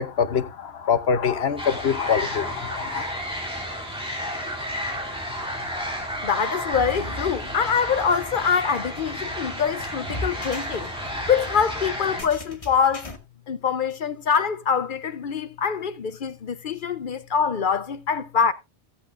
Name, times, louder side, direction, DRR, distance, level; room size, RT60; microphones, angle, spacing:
voice 1, 0.0-3.0, left 7 dB, 70° left, 1.2 m, -24 dB
sound 1, 1.6-12.2, equal, 5° right, 2.7 m, -32 dB
voice 2, 6.2-10.9 11.3-13.1 13.5-18.5, left 6 dB, 55° left, 0.8 m, -24 dB
sound 2, 6.7-13.2, left 2 dB, 35° left, 1.2 m, -38 dB
16.0 x 8.2 x 2.5 m
omnidirectional pair, 1.1 m